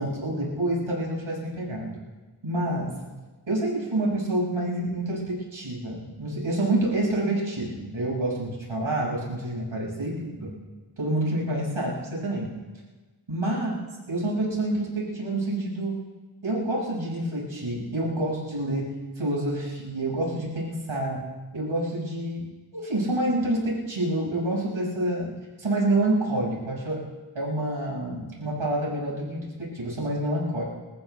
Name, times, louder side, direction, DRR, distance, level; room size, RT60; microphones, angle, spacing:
voice 1, 0.0-1.9 2.4-2.9 3.5-10.1 10.4-10.5 11.0-12.5 13.3-13.8 14.1-16.0 16.4-21.2 21.5-22.5 22.7-25.3 25.6-27.0 27.3-30.6, right 1 dB, 80° right, -4 dB, 6.2 m, -28 dB
28.5 x 14.5 x 3.5 m, 1.2 s
wide cardioid pair, 75°, 47 cm